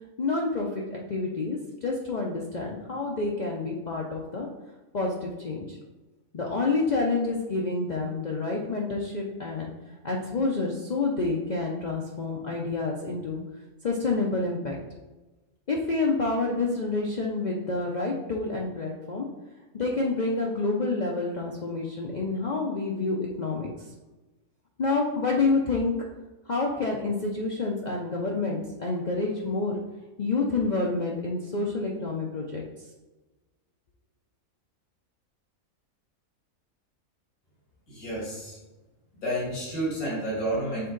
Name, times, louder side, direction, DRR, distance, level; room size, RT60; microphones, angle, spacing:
voice 1, 0.2-4.5 4.9-5.8 6.3-9.7 10.0-13.4 13.8-14.8 15.7-19.2 19.7-23.7 24.8-25.9 26.5-29.7 30.2-32.6, left 3 dB, 45° left, -2 dB, 0.6 m, -28 dB
voice 2, 37.9-38.6 39.2-40.9, right 1 dB, 90° left, -7 dB, 2.5 m, -30 dB
6.8 x 3.7 x 3.9 m, 1.1 s
omnidirectional pair, 1.5 m